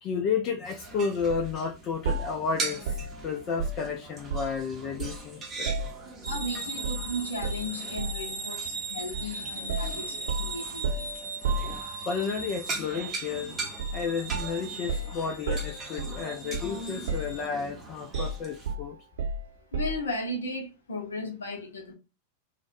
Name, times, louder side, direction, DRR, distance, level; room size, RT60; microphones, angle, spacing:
voice 1, 0.0-5.7 12.0-19.0, left 5 dB, 35° left, 0.4 m, -32 dB
sound 1, 0.6-18.7, right 3 dB, 25° right, 0.7 m, -41 dB
sound 2, 1.3-1.5 2.0-4.6 5.0-6.5 6.8-7.1 7.4-8.3 9.1-9.3 9.7-12.2 13.8-14.0 14.3-16.8 17.1-17.7 18.1-20.1, right 3 dB, 60° right, 0.7 m, -33 dB
sound 3, 6.2-17.5, right 3 dB, 85° right, 1.1 m, -39 dB
voice 2, 6.3-11.1 19.7-21.9, left 1 dB, 70° left, 0.7 m, -35 dB
2.4 x 2.1 x 2.4 m
figure-of-eight pair, 90°, 0 cm